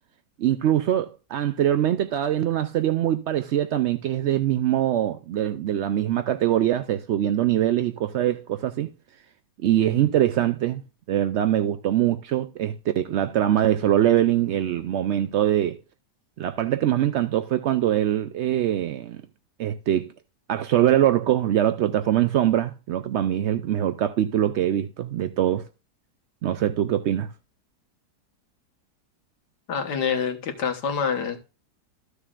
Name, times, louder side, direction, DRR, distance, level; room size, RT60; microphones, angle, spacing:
voice 1, 0.4-8.9 9.6-10.8 11.1-15.8 16.4-19.2 19.6-20.1 20.5-25.6 26.4-27.3, right 11 dB, 75° right, 0.6 m, -23 dB
voice 2, 29.7-31.4, left 6 dB, 90° left, 1.9 m, -26 dB
14.0 x 6.6 x 2.5 m
omnidirectional pair, 1.7 m